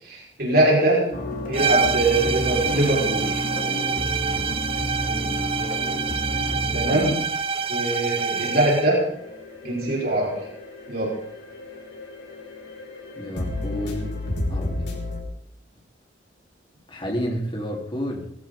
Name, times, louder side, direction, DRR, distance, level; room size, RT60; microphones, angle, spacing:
voice 1, 0.0-1.1 1.5-3.4 6.7-7.2 7.7-9.1 9.6-10.4 10.9-11.1, right 1 dB, 55° right, -4 dB, 5.4 m, -22 dB
sound 1, 1.1-7.1, equal, 50° left, 3.5 m, -30 dB
sound 2, 1.5-9.0, right 6 dB, 30° right, 0.7 m, -26 dB
voice 2, 5.0-5.4 13.2-14.2 14.5-14.9 16.9-18.3, equal, 30° left, -2 dB, 4.1 m, -31 dB
sound 3, 8.4-15.2, left 2 dB, 75° left, 5.6 m, -33 dB
20.5 x 16.0 x 4.0 m, 0.73 s
head